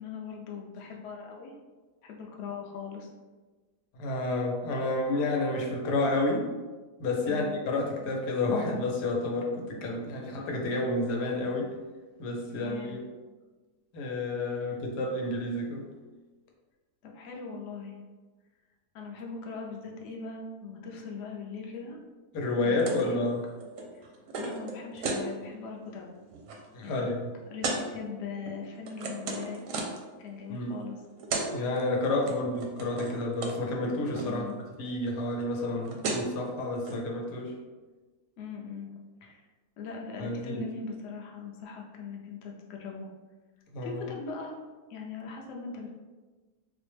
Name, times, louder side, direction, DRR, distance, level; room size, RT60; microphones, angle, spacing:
voice 1, 0.0-1.5 2.0-3.1 7.2-7.6 12.5-13.0 14.6-14.8 17.0-18.0 18.9-22.0 22.6-23.3 23.9-24.0 24.4-26.1 26.8-27.1 27.5-29.6 30.2-31.0 32.2-32.3 34.2-34.6 38.4-38.9 39.2-39.4 39.8-43.1 43.8-44.5 44.9-45.9, left 5 dB, 65° left, 0 dB, 0.8 m, -40 dB
voice 2, 3.9-6.5 7.0-11.7 12.2-13.0 13.9-15.8 22.3-23.4 26.7-27.3 30.5-30.8 31.5-34.4 34.8-37.5 40.2-40.6 43.7-44.0, left 2 dB, 90° left, 0 dB, 1.3 m, -30 dB
sound 1, 22.8-23.1 23.4-25.2 25.7-26.0 26.3-26.6 27.6-27.8 28.5-30.1 30.9-31.0 31.2-31.5 31.8-32.3 32.6-33.2 33.4-33.6 33.8-34.3 35.6-35.7 35.8-36.4 36.8-37.0, right 3 dB, 70° right, 0.8 m, -34 dB
4.2 x 2.1 x 3.2 m, 1.3 s
omnidirectional pair, 1.8 m